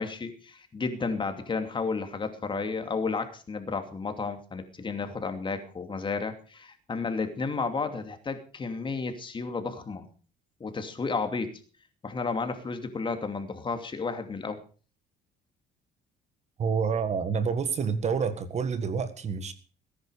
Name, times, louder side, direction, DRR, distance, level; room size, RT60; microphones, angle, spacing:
voice 1, 0.0-10.1 10.6-11.5 12.0-14.6, left 4 dB, 30° left, 2.7 m, -32 dB
voice 2, 16.6-19.5, right 6 dB, 40° right, 1.6 m, -28 dB
19.0 x 10.5 x 5.0 m
cardioid pair, 110°, 17 cm